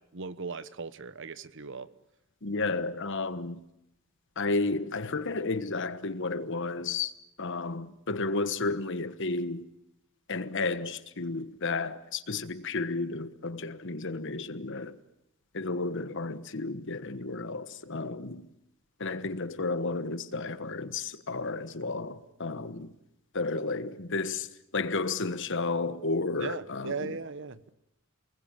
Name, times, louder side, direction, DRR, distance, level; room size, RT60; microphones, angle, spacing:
voice 1, 0.1-1.9 26.4-27.7, right 4 dB, 60° right, 1.1 m, -38 dB
voice 2, 2.4-3.6 4.4-7.1 7.4-9.7 10.3-15.0 15.5-18.5 19.0-22.9 23.3-24.5 24.7-27.2, left 3 dB, 60° left, 1.3 m, -32 dB
29.0 x 20.5 x 9.0 m
head